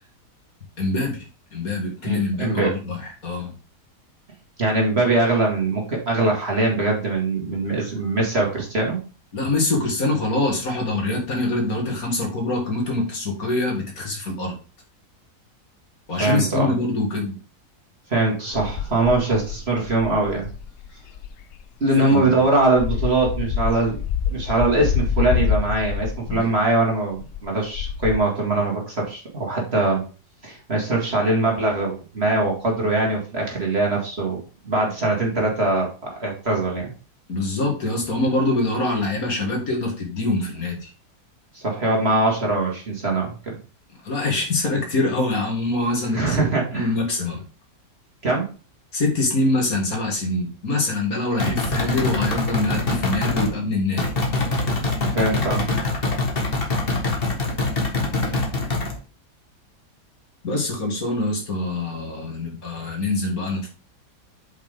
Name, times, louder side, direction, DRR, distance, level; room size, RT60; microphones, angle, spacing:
voice 1, 0.8-1.2 1.5-3.5 9.3-14.5 16.1-17.3 22.0-22.3 26.3-26.5 37.3-40.9 44.0-46.4 46.7-47.4 48.9-54.1 60.4-63.7, left 2 dB, 60° left, 0 dB, 2.5 m, -24 dB
voice 2, 2.0-2.7 4.6-9.0 16.2-16.7 18.1-20.5 21.8-24.0 24.3-30.0 30.4-35.9 36.2-36.9 41.5-43.6 46.1-46.9 48.2-48.5 55.1-55.6, right 2 dB, 40° right, -1 dB, 2.5 m, -22 dB
sound 1, 18.5-21.6 22.1-26.8 27.1-28.2, left 8 dB, 85° left, 0.6 m, -26 dB
sound 2, 51.4-53.5 54.0-58.9, left 2 dB, 35° left, 1.6 m, -24 dB
7.7 x 5.5 x 3.6 m, 0.36 s
omnidirectional pair, 1.7 m